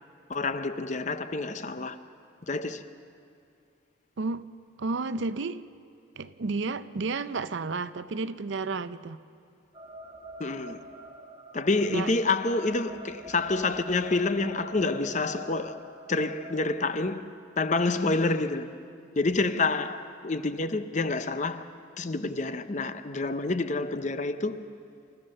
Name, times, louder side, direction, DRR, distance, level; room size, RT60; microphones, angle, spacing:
voice 1, 0.3-2.0 2.5-2.8 10.4-10.8 11.5-17.2 17.6-18.7 19.2-21.6 22.0-24.6, left 3 dB, 35° left, 0.7 m, -28 dB
voice 2, 4.2-4.5 4.8-5.6 6.2-9.2 11.9-12.1, right 3 dB, 60° right, 0.6 m, -31 dB
sound 1, 9.7-16.9, right 1 dB, 20° right, 1.5 m, -46 dB
28.5 x 14.5 x 6.5 m
head